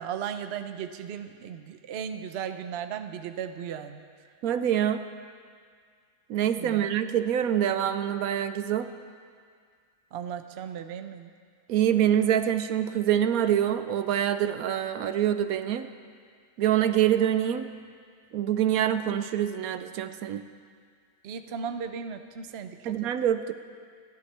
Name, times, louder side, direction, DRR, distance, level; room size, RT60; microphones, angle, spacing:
voice 1, 0.0-4.0 6.6-6.9 10.1-11.3 21.2-23.1, right 8 dB, 55° right, 8 dB, 0.8 m, -36 dB
voice 2, 4.4-5.0 6.3-8.9 11.7-15.9 16.6-17.7 18.3-20.4 22.9-23.5, right 10 dB, 75° right, 10 dB, 1.1 m, -25 dB
28.0 x 11.0 x 3.4 m, 2.1 s
omnidirectional pair, 1.5 m